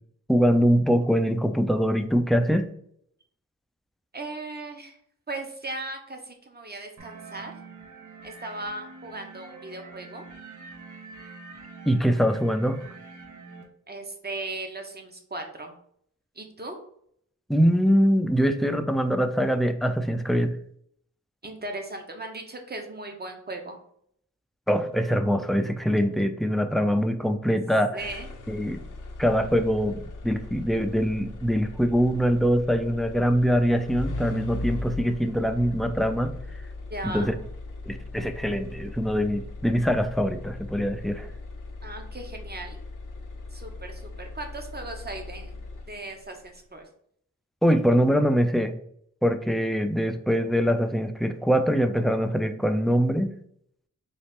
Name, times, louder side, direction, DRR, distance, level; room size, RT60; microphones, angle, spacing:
voice 1, 0.3-2.7 11.9-12.8 17.5-20.6 24.7-28.0 28.5-28.8 29.2-36.4 37.0-37.3 37.9-41.3 47.6-48.7 49.2-53.3, equal, ahead, 7 dB, 0.3 m, -23 dB
voice 2, 4.1-5.0 5.3-7.5 8.2-10.2 13.9-15.8 16.3-16.8 21.4-23.8 27.9-28.3 36.9-37.3 41.8-42.8 43.5-45.6 45.9-46.9, right 2 dB, 30° right, 4 dB, 0.8 m, -37 dB
sound 1, 7.0-13.6, right 4 dB, 75° right, 0.7 m, -45 dB
sound 2, 28.0-46.2, left 2 dB, 80° left, 0.7 m, -39 dB
4.0 x 2.4 x 3.5 m, 0.66 s
wide cardioid pair, 75°, 30 cm